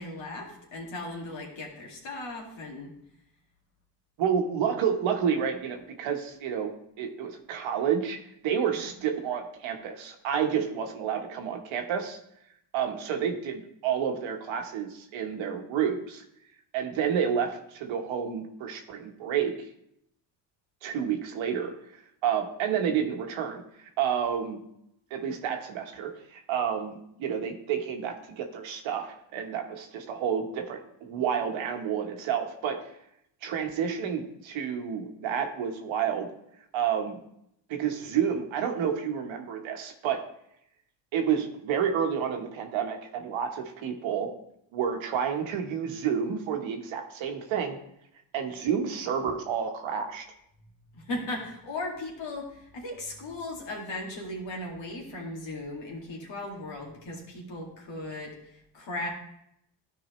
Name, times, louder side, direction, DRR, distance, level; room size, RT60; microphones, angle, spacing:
voice 1, 0.0-2.9 8.7-9.0 50.9-59.1, left 2 dB, 70° left, -1 dB, 2.2 m, -37 dB
voice 2, 4.2-6.7 7.0-8.2 8.4-12.2 12.7-16.2 16.7-19.5 20.8-21.7 22.2-24.6 25.1-32.8 33.4-36.3 36.7-37.2 37.7-40.2 41.1-44.3 44.7-47.8 48.3-50.2, right 8 dB, 80° right, 4 dB, 1.2 m, -30 dB
12.0 x 4.7 x 3.1 m, 0.76 s
supercardioid pair, 60°, 46 cm